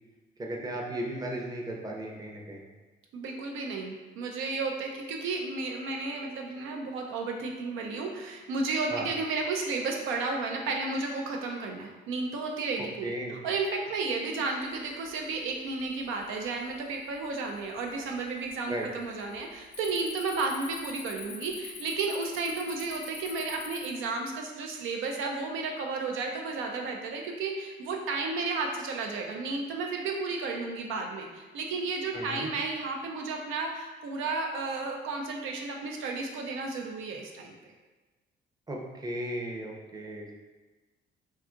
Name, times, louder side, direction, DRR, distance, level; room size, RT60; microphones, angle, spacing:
voice 1, 0.4-2.6 8.9-9.1 13.0-13.4 18.7-18.9 32.1-32.5 38.7-40.3, right 1 dB, 20° right, -1 dB, 0.6 m, -36 dB
voice 2, 3.1-37.6, right 3 dB, 85° right, 1 dB, 0.4 m, -33 dB
Cricket, 14.9-15.4 15.8-16.2 16.8-16.9 17.5-18.2 18.4-18.7 19.0-23.9, left 5 dB, 80° left, 0.5 m, -44 dB
2.6 x 2.3 x 3.6 m, 1.2 s
cardioid pair, 90°, 20 cm